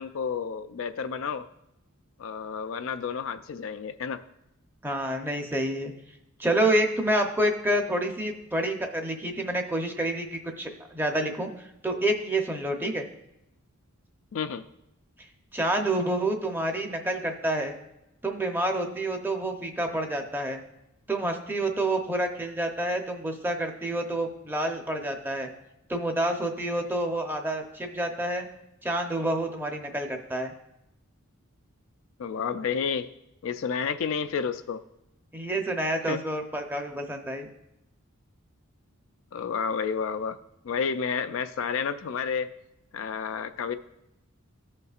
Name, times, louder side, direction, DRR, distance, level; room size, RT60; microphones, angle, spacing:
voice 1, 0.0-1.5 2.2-4.2 14.3-14.6 32.2-33.1 33.4-34.8 36.1-36.2 39.3-40.4 40.6-42.5 42.9-43.8, left 6 dB, 65° left, 10 dB, 0.4 m, -30 dB
voice 2, 4.8-5.9 6.4-13.1 15.5-17.8 18.2-20.6 21.1-25.5 25.9-28.4 28.8-30.5 35.3-37.5, right 1 dB, 10° right, 3 dB, 0.7 m, -28 dB
15.0 x 5.4 x 2.4 m, 0.86 s
head